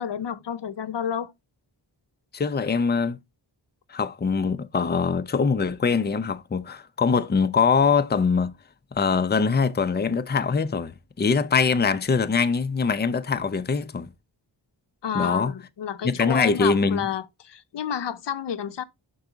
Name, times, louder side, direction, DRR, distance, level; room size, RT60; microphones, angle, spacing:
voice 1, 0.0-1.3 15.0-18.8, left 8 dB, 65° left, 0.6 m, -30 dB
voice 2, 2.3-3.2 3.9-8.5 8.9-14.1 15.1-15.5 16.0-17.1, left 5 dB, 25° left, 0.5 m, -23 dB
5.9 x 4.6 x 3.8 m
wide cardioid pair, 100°, 46 cm